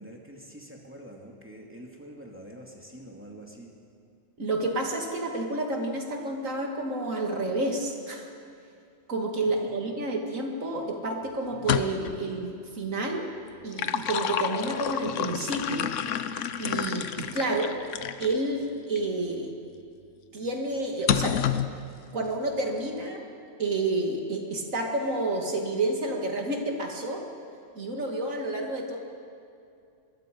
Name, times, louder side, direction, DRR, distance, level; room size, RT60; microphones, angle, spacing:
voice 1, 0.0-3.8, right 1 dB, 10° right, -1 dB, 2.5 m, -46 dB
voice 2, 4.4-8.3 9.1-13.3 13.6-15.9 16.6-17.8 18.2-19.5 20.3-21.4 22.1-23.3 23.6-27.2 27.7-29.0, right 2 dB, 85° right, 1 dB, 2.7 m, -30 dB
sound 1, 11.5-12.2 13.5-18.3 19.0-19.1 21.1-21.7, left 9 dB, 70° left, 1.1 m, -29 dB
23.0 x 22.0 x 5.3 m, 2.5 s
omnidirectional pair, 1.3 m